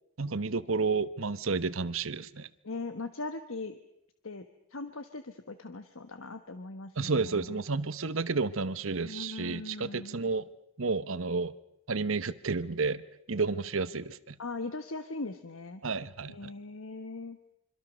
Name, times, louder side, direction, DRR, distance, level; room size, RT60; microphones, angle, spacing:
voice 1, 0.2-2.5 7.0-10.5 10.8-11.5 11.9-13.0 13.3-14.3 15.8-16.5, right 4 dB, 75° right, 15 dB, 1.0 m, -31 dB
voice 2, 2.6-3.8 4.2-4.4 4.7-7.5 9.0-10.2 14.4-15.8 16.3-17.4, left 3 dB, 75° left, 9 dB, 1.2 m, -40 dB
26.0 x 25.5 x 6.4 m, 0.79 s
head